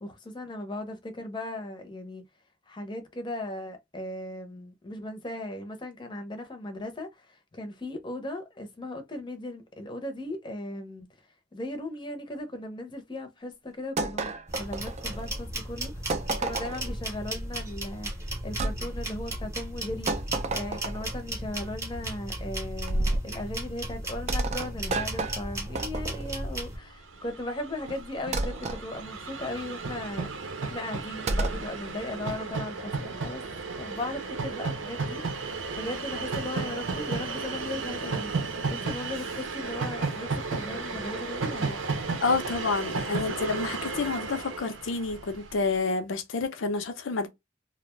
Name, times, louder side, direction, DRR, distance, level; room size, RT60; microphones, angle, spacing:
voice 1, 0.0-2.2 2.7-11.1 11.5-20.1 20.5-30.3 30.6-33.4 33.7-35.2 35.8-42.0, left 1 dB, 25° left, 0.6 m, -37 dB
sound 1, 14.0-15.4 16.1-16.9 18.6-18.8 20.1-21.2 22.9-23.3 24.3-26.4 28.3-28.8 31.3-31.7, right 2 dB, 35° right, 0.3 m, -30 dB
sound 2, 14.5-26.8, right 1 dB, 15° right, 0.7 m, -35 dB
Train, 26.9-27.0 27.1-45.5, right 4 dB, 80° right, 0.7 m, -34 dB
voice 2, 42.2-47.3, left 4 dB, 85° left, 0.5 m, -29 dB
2.4 x 2.1 x 3.0 m
head